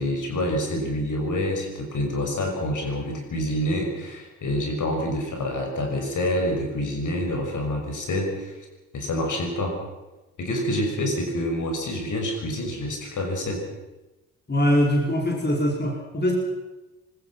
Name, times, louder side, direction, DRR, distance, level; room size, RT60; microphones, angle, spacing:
voice 1, 0.0-8.5 8.9-9.8 10.4-13.6, left 1 dB, 45° left, 2 dB, 6.3 m, -27 dB
voice 2, 14.5-16.3, equal, 25° left, -1 dB, 5.2 m, -22 dB
25.5 x 20.5 x 5.9 m, 1.1 s
figure-of-eight pair, 45°, 43 cm